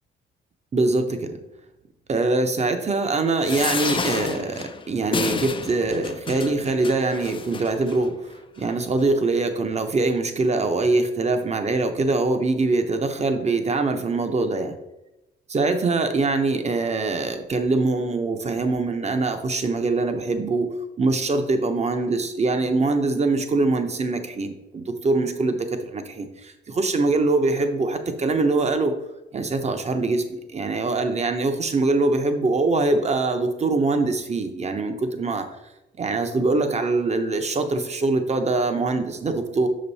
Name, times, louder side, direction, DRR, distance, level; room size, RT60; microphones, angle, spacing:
voice 1, 0.7-1.4 2.1-8.2 8.6-14.8 15.5-20.7 21.0-28.9 29.3-35.5 36.0-39.7, right 3 dB, 35° right, 7 dB, 0.9 m, -23 dB
sound 1, 3.4-8.0 8.6-8.7 9.0-9.1, left 5 dB, 25° left, 0.5 m, -30 dB
6.5 x 5.3 x 4.1 m, 0.95 s
cardioid pair, 90°, 20 cm